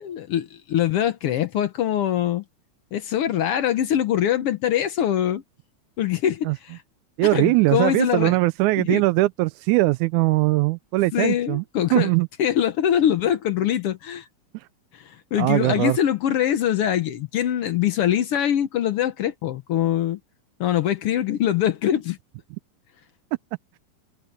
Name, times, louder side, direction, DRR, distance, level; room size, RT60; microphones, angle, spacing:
voice 1, 0.0-2.4 2.9-5.4 6.0-6.8 7.2-8.4 8.8-9.0 11.1-12.1 12.4-14.2 14.9-20.2 20.6-22.2, left 10 dB, 65° left, 1.5 m, -23 dB
voice 2, 7.2-11.6 11.9-12.3 14.5-14.6 15.4-16.0, right 20 dB, 85° right, 2.0 m, -20 dB
omnidirectional pair, 3.4 m